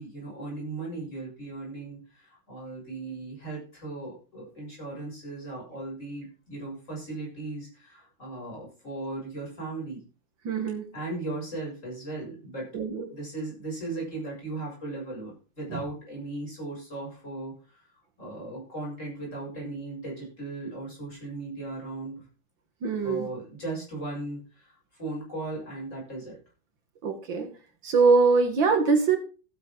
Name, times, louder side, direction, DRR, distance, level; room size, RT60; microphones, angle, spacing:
voice 1, 0.0-10.0 10.9-12.7 13.1-17.8 18.2-22.2 23.0-26.4, right 2 dB, 35° left, -3 dB, 7.4 m, -37 dB
voice 2, 10.4-10.8 12.7-13.1 15.7-15.8 22.8-23.3 27.0-27.5 27.8-29.2, right 4 dB, 60° right, 6 dB, 2.3 m, -23 dB
15.0 x 9.7 x 3.8 m, 0.35 s
omnidirectional pair, 2.4 m